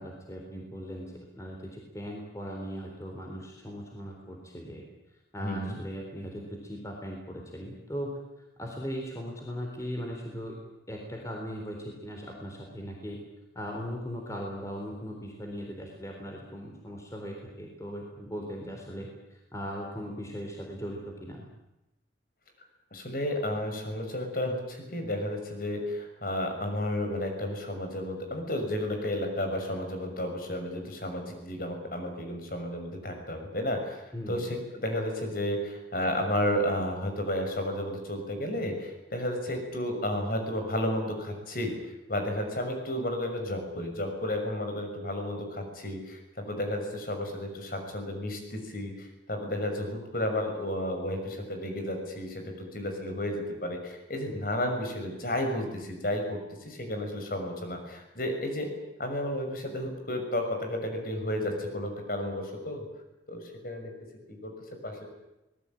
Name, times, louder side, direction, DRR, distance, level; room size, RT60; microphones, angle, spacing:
voice 1, 0.0-4.8 5.3-8.2 8.6-10.6 10.9-13.2 13.5-21.5 34.1-34.5 54.3-54.5, equal, 15° left, 1 dB, 3.8 m, -39 dB
voice 2, 5.4-5.8 22.9-41.7 42.1-58.7 59.0-62.8 63.3-63.9 64.3-64.5 64.8-65.0, left 1 dB, 50° left, 4 dB, 6.3 m, -32 dB
25.5 x 19.5 x 8.9 m, 0.95 s
head